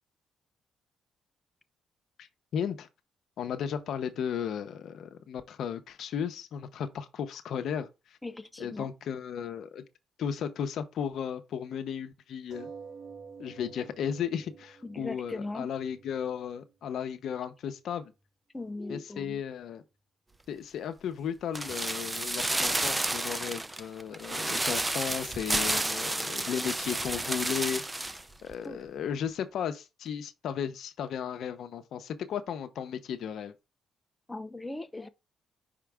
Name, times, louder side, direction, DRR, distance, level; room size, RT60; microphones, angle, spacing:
voice 1, 2.2-2.9 3.4-8.2 8.6-9.8 10.2-12.7 13.4-18.1 18.9-19.8 20.5-27.8 28.4-33.5, left 8 dB, 70° left, 0.9 m, -35 dB
voice 2, 8.2-8.9 14.8-15.7 18.5-19.4 28.6-28.8 34.3-35.1, left 2 dB, 15° left, 0.8 m, -39 dB
sound 1, 12.5-17.5 18.3-18.4 18.7-18.8, right 5 dB, 55° right, 2.2 m, -49 dB
sound 2, 21.5-28.2 28.5-28.6, right 2 dB, 15° right, 0.6 m, -31 dB
5.8 x 4.9 x 3.5 m
cardioid pair, 90°, 0 cm